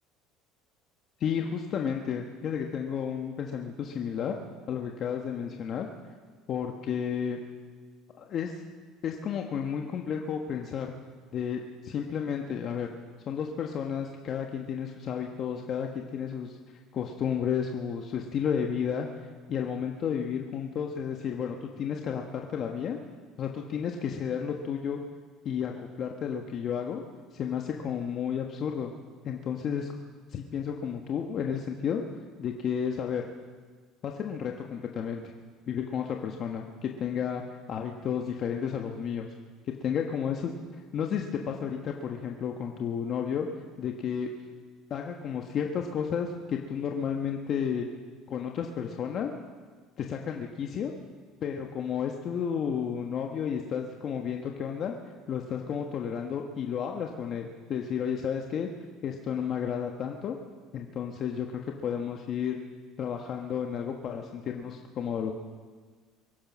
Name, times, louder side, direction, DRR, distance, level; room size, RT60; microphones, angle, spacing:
voice 1, 1.2-4.4 4.7-5.9 6.5-7.4 8.2-8.6 9.0-10.9 11.3-12.9 13.3-16.6 16.9-23.0 23.4-25.0 25.4-27.0 27.3-28.9 29.2-29.9 30.3-32.0 32.4-33.3 34.0-35.3 35.7-37.4 37.7-39.3 39.8-43.5 43.8-44.3 44.9-47.9 48.3-49.3 50.0-50.9 51.4-54.9 55.3-58.7 59.0-60.4 60.7-62.6 63.0-65.3, left 7 dB, 45° left, 2 dB, 1.3 m, -32 dB
23.0 x 10.0 x 6.2 m, 1.5 s
supercardioid pair, 115°, 0 cm